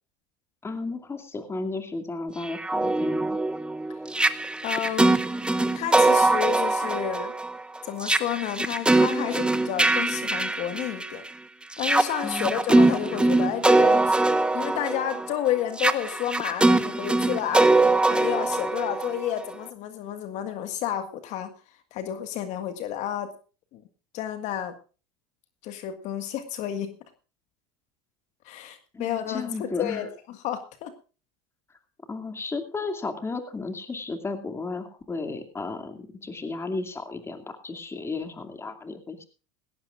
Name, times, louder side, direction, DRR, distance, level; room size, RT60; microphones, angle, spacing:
voice 1, 0.6-3.4 12.2-12.6 28.9-30.1 32.1-39.3, left 3 dB, 20° left, 6 dB, 2.5 m, -34 dB
sound 1, 2.4-11.3 11.7-19.5, right 2 dB, 5° right, 0.8 m, -22 dB
voice 2, 4.6-5.3 5.7-7.3 7.8-11.2 11.8-14.2 14.5-23.3 23.7-23.8 24.1-24.8 25.6-26.9 28.4-30.9, left 11 dB, 55° left, 8 dB, 1.8 m, -31 dB
18.0 x 16.5 x 2.5 m, 0.35 s
hypercardioid pair, 95°, 14 cm